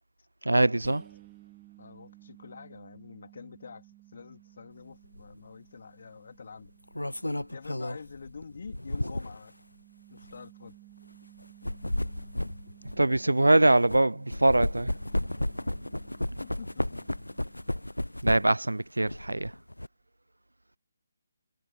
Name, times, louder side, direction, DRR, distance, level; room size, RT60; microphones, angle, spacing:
voice 1, 0.4-1.0 13.0-14.9 18.2-19.5, right 2 dB, 80° right, 0.6 m, -23 dB
sound 1, 0.8-18.3, right 20 dB, 15° right, 3.2 m, -57 dB
voice 2, 1.8-3.9 4.1-6.7 7.5-9.5 10.1-10.8 16.4-17.1, left 5 dB, 50° left, 3.6 m, -46 dB
sound 2, 5.1-5.3 6.6-9.5 10.2-10.3 11.4-14.0 14.3-18.7 19.0-19.9, left 1 dB, 85° left, 0.6 m, -33 dB
figure-of-eight pair, 145°, 0 cm